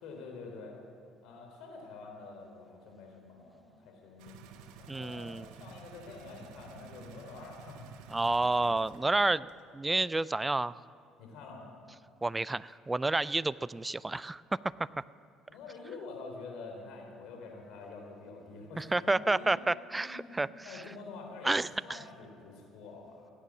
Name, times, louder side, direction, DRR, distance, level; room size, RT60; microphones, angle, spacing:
voice 1, 0.0-0.8 1.2-7.9 8.4-8.5 9.0-9.2 11.2-11.7 15.5-23.3, left 3 dB, 70° left, 1 dB, 3.6 m, -47 dB
sound 1, 4.2-9.2 9.5-9.6, right 7 dB, 80° right, 1.0 m, -52 dB
voice 2, 4.9-5.5 8.1-9.5 9.7-10.8 12.2-15.0 18.8-20.5 20.7-20.8 21.4-22.0, right 2 dB, 15° right, 19 dB, 0.4 m, -30 dB
16.0 x 9.3 x 7.3 m, 2.4 s
supercardioid pair, 75°, 0 cm